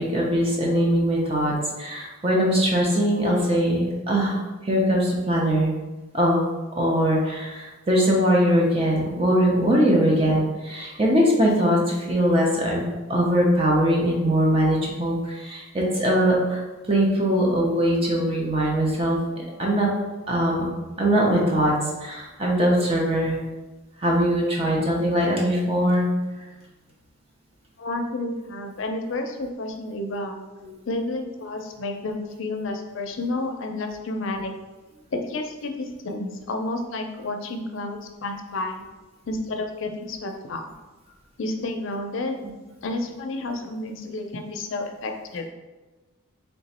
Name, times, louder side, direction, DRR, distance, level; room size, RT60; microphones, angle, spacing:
voice 1, 0.0-5.7 6.1-6.4 6.8-16.6 16.9-19.9 20.3-20.6 21.0-23.4 24.0-26.0, equal, 25° right, -2 dB, 0.6 m, -21 dB
voice 2, 27.8-30.4 30.9-34.5 35.1-38.8 39.3-40.6 41.4-42.4 42.8-45.5, left 2 dB, 65° left, 4 dB, 0.5 m, -30 dB
3.3 x 3.0 x 4.1 m, 1.2 s
head